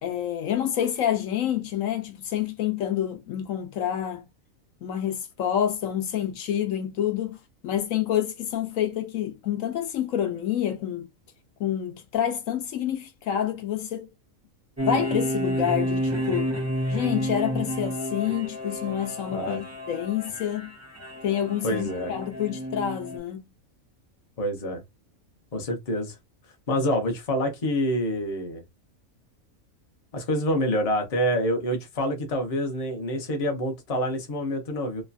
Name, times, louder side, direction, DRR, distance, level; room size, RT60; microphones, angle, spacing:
voice 1, 0.0-4.3 4.8-7.4 7.6-11.1 11.6-14.1 14.8-16.5 16.9-20.7 21.2-23.4, left 10 dB, 75° left, 1.0 m, -28 dB
sound 1, 14.8-23.2, equal, 15° right, 0.6 m, -30 dB
voice 2, 21.6-22.1 24.4-24.8 25.5-26.1 26.7-28.6 30.1-35.0, equal, 35° left, 0.7 m, -27 dB
3.1 x 2.2 x 2.5 m
omnidirectional pair, 1.4 m